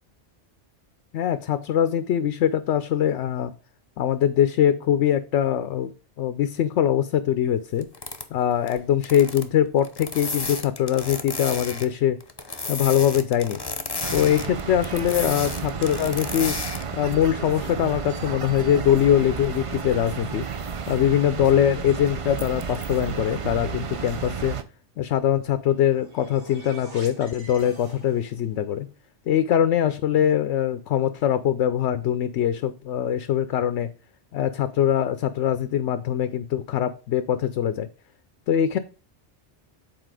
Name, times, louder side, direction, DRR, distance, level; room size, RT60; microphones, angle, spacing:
voice 1, 1.1-3.5 4.0-5.9 6.2-7.9 8.3-12.2 12.7-13.6 14.1-16.6 16.9-20.4 20.9-24.6 25.0-28.9 29.3-33.9 34.3-37.9 38.5-38.8, left 10 dB, 80° left, 11 dB, 0.9 m, -22 dB
sound 1, 7.8-8.2 8.7-8.8 9.0-9.4 9.8-11.9 12.2-16.8, left 3 dB, 25° left, 0.9 m, -32 dB
sound 2, 14.0-24.6, right 6 dB, 40° right, 0.5 m, -32 dB
sound 3, 25.6-28.5, right 1 dB, 70° right, 3.3 m, -46 dB
7.9 x 4.2 x 4.8 m, 0.35 s
omnidirectional pair, 1.2 m